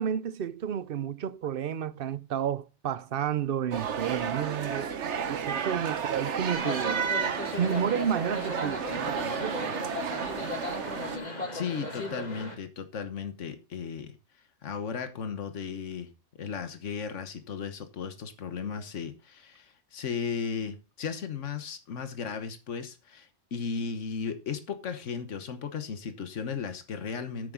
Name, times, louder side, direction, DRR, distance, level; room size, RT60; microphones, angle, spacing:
voice 1, 0.0-4.9 5.3-7.0 7.6-9.8, right 9 dB, 55° right, 0.8 m, -31 dB
sound 1, 3.7-11.2, right 7 dB, 70° right, 1.2 m, -32 dB
sound 2, 6.5-12.5, left 1 dB, 35° left, 2.2 m, -36 dB
voice 2, 11.5-14.2 14.6-16.1 16.4-27.5, left 6 dB, 85° left, 1.5 m, -35 dB
9.6 x 8.9 x 3.8 m
omnidirectional pair, 1.2 m